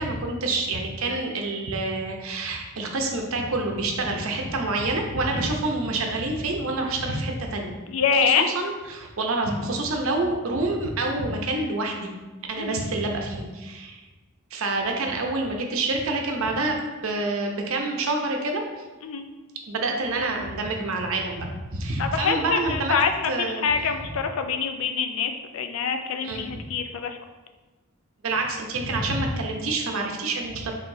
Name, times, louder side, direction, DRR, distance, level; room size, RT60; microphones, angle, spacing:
voice 1, 0.0-7.7 8.2-12.1 12.5-14.0 14.5-16.8 17.0-18.6 19.7-22.9 23.3-23.7 26.2-26.4 28.2-30.8, right 2 dB, 75° right, 2 dB, 0.7 m, -27 dB
voice 2, 7.9-8.4 12.6-12.8 19.0-19.2 22.0-27.2, left 6 dB, 75° left, 6 dB, 0.4 m, -25 dB
4.7 x 3.4 x 2.6 m, 1.2 s
head